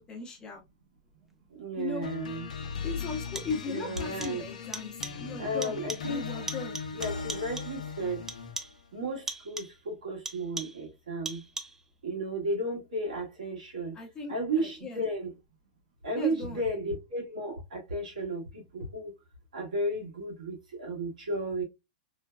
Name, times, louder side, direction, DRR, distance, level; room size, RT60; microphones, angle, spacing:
voice 1, 0.1-0.6 1.8-2.1 2.8-5.8 6.1-6.8 13.9-15.0 16.2-16.7, left 4 dB, 20° left, 0.8 m, -38 dB
voice 2, 1.6-2.5 3.7-4.4 5.4-6.2 6.9-8.2 8.9-11.4 12.0-14.0 14.3-15.3 16.0-19.1 19.5-21.6, right 1 dB, 85° right, 1.6 m, -33 dB
sound 1, 2.0-8.7, left 5 dB, 85° left, 0.6 m, -38 dB
sound 2, 2.1-2.2 3.1-3.7 4.0-4.5 4.7-5.3 5.6-6.2 6.5-7.8 8.3-8.9 9.3-9.8 10.3-10.9 11.3-11.9, right 2 dB, 10° right, 0.4 m, -40 dB
3.2 x 2.2 x 2.2 m
hypercardioid pair, 125°, 4 cm